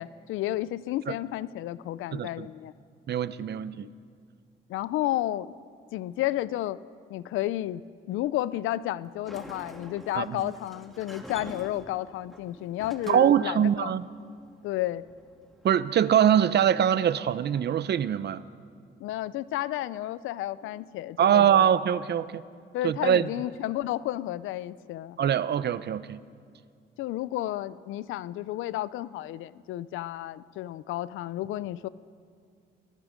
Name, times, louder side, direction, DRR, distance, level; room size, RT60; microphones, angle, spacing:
voice 1, 0.0-2.7 3.8-3.9 4.7-5.5 5.9-6.8 7.1-7.8 8.1-13.9 14.6-15.0 19.0-21.7 22.7-25.2 27.0-31.9, left 14 dB, 90° left, 18 dB, 0.6 m, -32 dB
voice 2, 2.1-2.5 3.1-3.9 10.1-10.4 13.1-14.1 15.6-18.4 21.2-22.4 22.8-23.3 25.2-26.2, right 9 dB, 55° right, 15 dB, 0.8 m, -23 dB
Sliding door, 9.0-16.6, equal, ahead, 2.4 m, -48 dB
29.0 x 19.5 x 5.2 m, 2.2 s
cardioid pair, 90°, 20 cm